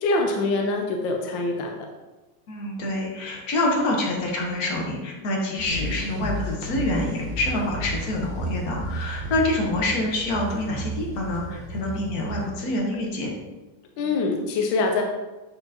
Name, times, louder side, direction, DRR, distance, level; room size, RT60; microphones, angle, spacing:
voice 1, 0.0-1.8 14.0-15.0, left 3 dB, 70° left, 2 dB, 1.3 m, -24 dB
voice 2, 2.5-13.3, left 1 dB, 50° left, -1 dB, 1.5 m, -26 dB
sound 1, 5.7-13.1, right 1 dB, 75° right, 2.2 m, -33 dB
8.7 x 4.4 x 2.9 m, 1.2 s
omnidirectional pair, 2.3 m